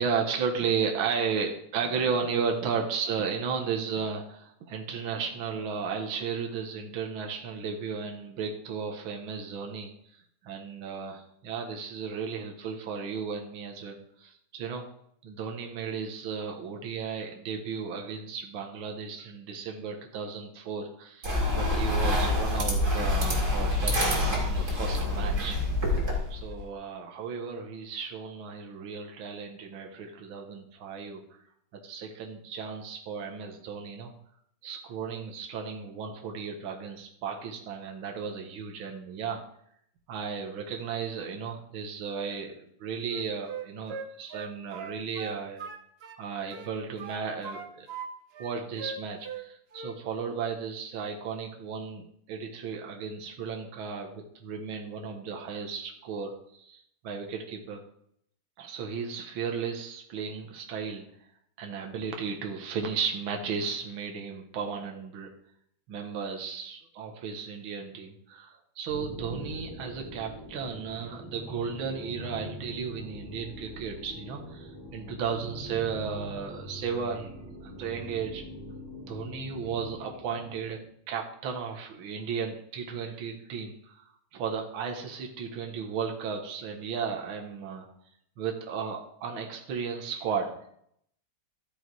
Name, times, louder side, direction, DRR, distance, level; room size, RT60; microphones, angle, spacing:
voice 1, 0.0-14.8 15.2-25.6 26.3-31.2 31.8-34.1 34.6-39.4 40.1-45.6 46.2-47.9 48.4-57.8 58.6-61.1 61.6-65.3 65.9-77.3 77.6-78.4 79.1-80.8 81.1-84.0 84.3-87.9 88.4-90.6, right 6 dB, 70° right, 2 dB, 2.0 m, -34 dB
sound 1, 21.2-26.6, left 1 dB, 35° right, 2.9 m, -26 dB
Wind instrument woodwind instrument, 43.0-46.2 46.5-48.1 48.3-49.5 49.7-50.0, right 5 dB, 85° right, 0.5 m, -40 dB
sound 2, 68.9-80.8, equal, 10° left, 3.6 m, -43 dB
13.5 x 6.3 x 4.7 m, 0.70 s
omnidirectional pair, 2.4 m